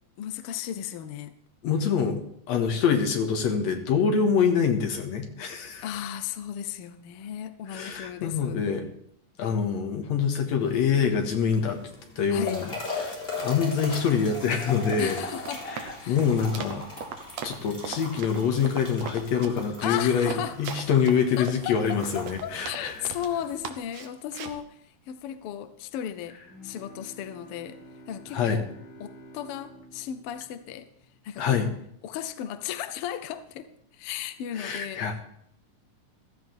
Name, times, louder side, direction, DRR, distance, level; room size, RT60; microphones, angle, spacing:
voice 1, 0.2-1.4 5.8-8.6 12.3-12.6 15.0-15.7 16.0-16.2 19.8-20.6 21.4-28.7 29.0-30.9 31.2-31.6 32.0-33.7 33.9-35.0, left 10 dB, 80° left, 11 dB, 1.3 m, -35 dB
voice 2, 1.6-2.2 2.5-5.8 7.7-8.9 9.4-11.8 12.2-12.7 13.0-15.2 15.7-16.9 17.4-22.9 28.3-28.6 31.4-31.7 34.5-35.3, left 6 dB, 65° left, 4 dB, 2.6 m, -25 dB
sound 1, 10.6-23.6, left 2 dB, 15° left, 3.6 m, -39 dB
Run, 14.7-23.3 23.6-24.6, right 7 dB, 70° right, 2.0 m, -39 dB
Bowed string instrument, 26.4-31.6, right 1 dB, 40° left, 6.6 m, -50 dB
15.5 x 13.5 x 3.4 m, 0.70 s
omnidirectional pair, 3.5 m